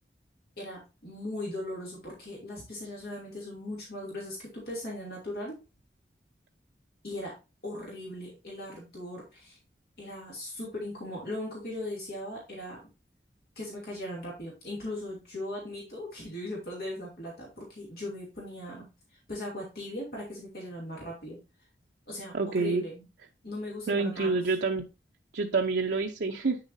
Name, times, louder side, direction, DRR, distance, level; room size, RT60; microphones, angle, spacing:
voice 1, 0.6-5.6 7.0-7.3 7.6-9.6 10.0-12.8 13.6-21.4 22.1-23.0 23.4-24.5, left 1 dB, 55° left, -4 dB, 2.6 m, -39 dB
voice 2, 22.3-22.8 23.9-24.8 25.3-26.6, right 4 dB, 70° right, 2 dB, 0.6 m, -27 dB
8.2 x 6.8 x 2.6 m, 0.28 s
head